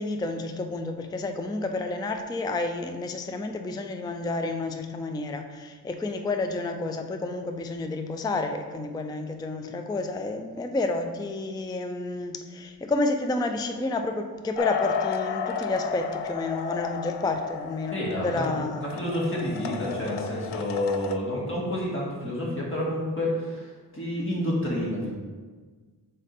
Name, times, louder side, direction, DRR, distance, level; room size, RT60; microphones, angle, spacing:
voice 1, 0.0-18.9, left 2 dB, 10° left, 6 dB, 0.3 m, -30 dB
sound 1, 14.5-21.2, left 7 dB, 80° left, 0.5 m, -33 dB
voice 2, 17.9-18.5 18.8-25.1, left 1 dB, 30° left, -5 dB, 1.9 m, -29 dB
7.3 x 2.8 x 5.3 m, 1.4 s
wide cardioid pair, 105°, 40 cm